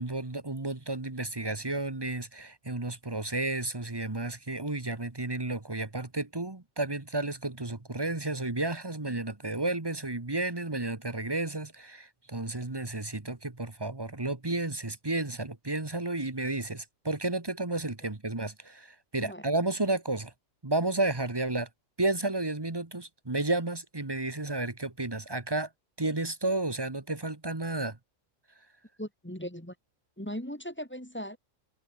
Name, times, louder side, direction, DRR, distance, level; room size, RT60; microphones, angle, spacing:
voice 1, 0.0-20.3 20.6-21.7 22.0-25.7 26.0-28.0, right 2 dB, 20° right, 1.5 m, -32 dB
voice 2, 29.0-29.8 30.2-31.4, equal, 10° left, 2.0 m, -38 dB
omnidirectional pair, 1.4 m